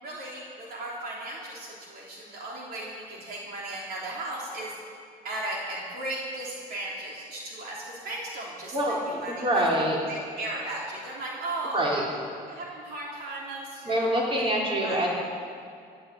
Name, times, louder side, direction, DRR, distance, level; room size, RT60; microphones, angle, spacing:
voice 1, 0.0-4.8 5.2-9.6 10.1-12.0 12.5-14.1 14.4-14.5 14.8-15.1, right 1 dB, 65° right, -3 dB, 3.3 m, -36 dB
voice 2, 9.3-10.0 11.7-12.1 13.9-15.1, right 1 dB, 30° right, -3 dB, 4.0 m, -25 dB
16.0 x 9.3 x 8.4 m, 2.3 s
cardioid pair, 110°, 17 cm